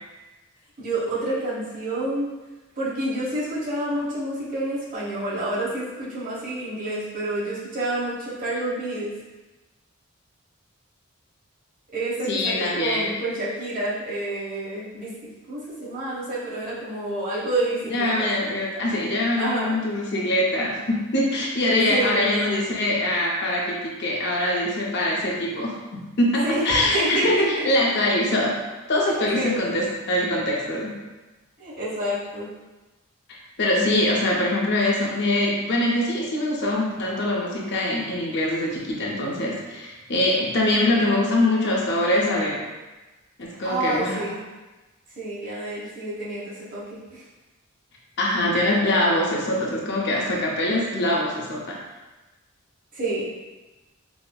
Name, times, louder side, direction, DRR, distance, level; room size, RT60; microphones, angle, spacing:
voice 1, 0.8-2.3 2.8-9.1 11.9-15.1 15.5-18.3 19.4-19.8 21.9-22.2 26.4-26.6 26.9-27.7 29.1-29.6 31.6-32.5 43.6-44.4 45.2-47.2 52.9-53.3, right 1 dB, 40° right, -9 dB, 1.2 m, -28 dB
voice 2, 12.3-13.1 17.9-28.5 28.9-31.0 33.3-42.6 43.4-44.3 45.5-45.6 48.2-51.8, left 1 dB, 50° left, -3 dB, 0.5 m, -23 dB
4.8 x 2.0 x 2.2 m, 1.1 s
head